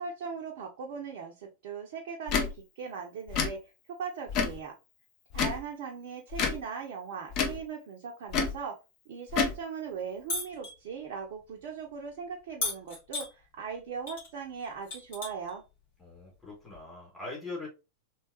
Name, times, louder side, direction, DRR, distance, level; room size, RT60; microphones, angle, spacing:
voice 1, 0.0-4.8 5.3-8.8 9.1-15.6, right 6 dB, 50° right, 0.6 m, -39 dB
Tick / Tick-tock, 2.3-2.5 3.3-3.5 4.3-4.6 5.3-5.6 6.3-6.6 7.3-7.6 8.3-8.6 9.3-9.6, left 5 dB, 40° left, 0.7 m, -28 dB
sound 1, 10.3-10.7 12.6-13.3 14.1-14.3 14.6-15.5 16.7-16.8, left 2 dB, 55° left, 1.7 m, -34 dB
voice 2, 16.0-17.7, left 3 dB, 5° left, 2.1 m, -41 dB
3.3 x 3.0 x 2.8 m
figure-of-eight pair, 90°, 0 cm